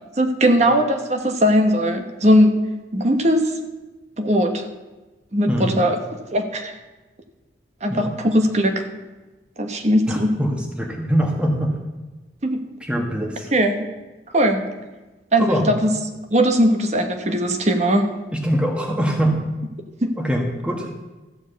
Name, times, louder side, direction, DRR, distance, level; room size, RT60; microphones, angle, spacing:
voice 1, 0.2-2.5 2.9-3.5 4.2-4.6 5.3-6.0 6.3-6.8 7.8-8.9 9.6-10.3 12.4-12.6 13.5-13.9 14.3-14.7 15.3-15.9 16.3-18.1 20.0-20.1, equal, 40° right, 6 dB, 1.1 m, -19 dB
voice 2, 5.5-5.9 7.9-8.1 10.1-11.7 12.8-13.5 15.4-15.7 18.3-19.5 20.2-20.9, equal, 5° right, 0 dB, 1.4 m, -23 dB
13.5 x 4.9 x 8.1 m, 1.2 s
head